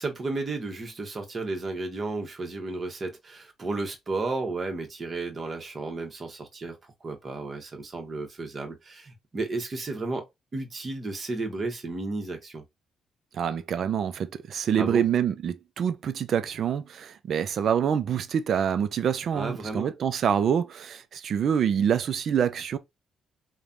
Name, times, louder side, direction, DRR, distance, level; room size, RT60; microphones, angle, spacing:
voice 1, 0.0-6.8 7.0-10.2 10.5-12.6 14.8-15.0 19.3-19.9, right 3 dB, 35° right, 1.0 m, -33 dB
voice 2, 13.3-22.8, right 8 dB, 60° right, 0.4 m, -26 dB
3.2 x 2.2 x 2.5 m
cardioid pair, 90°, 0 cm